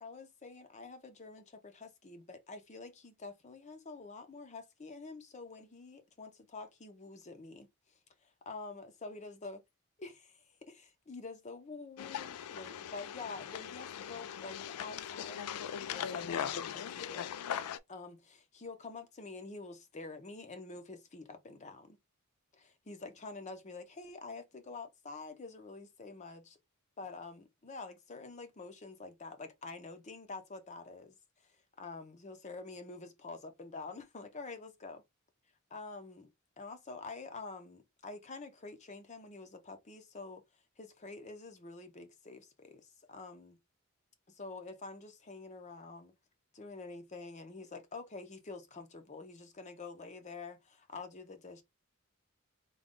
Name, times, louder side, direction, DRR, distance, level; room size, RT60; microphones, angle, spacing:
voice 1, 0.0-9.6 10.0-15.6 15.9-17.3 17.9-22.0 22.5-26.6 27.0-35.0 35.7-36.3 36.6-43.6 44.3-46.1 46.5-51.6, left 3 dB, 35° left, 0.7 m, -47 dB
sound 1, 12.0-17.8, left 9 dB, 90° left, 0.3 m, -40 dB
3.7 x 2.3 x 3.6 m
head